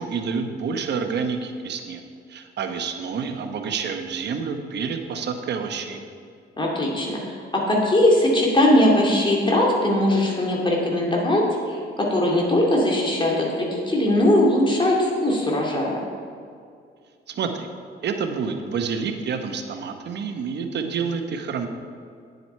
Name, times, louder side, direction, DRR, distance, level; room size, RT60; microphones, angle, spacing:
voice 1, 0.0-2.0 2.3-6.0 17.3-17.7 18.0-21.7, right 5 dB, 60° right, 5 dB, 0.9 m, -28 dB
voice 2, 6.6-7.2 7.5-11.4 11.7-16.0, left 1 dB, 25° left, -2 dB, 2.4 m, -20 dB
9.4 x 7.9 x 4.4 m, 2.3 s
cardioid pair, 90°, 20 cm